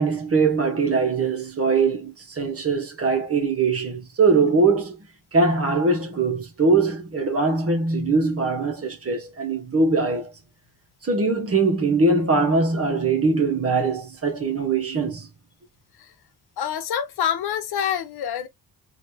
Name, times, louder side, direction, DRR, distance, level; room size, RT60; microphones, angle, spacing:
voice 1, 0.0-5.0 5.3-10.3 11.0-15.3, right 3 dB, 40° right, 1.4 m, -22 dB
voice 2, 16.6-18.5, left 9 dB, 90° left, 0.9 m, -26 dB
3.3 x 2.9 x 2.9 m
cardioid pair, 90°, 37 cm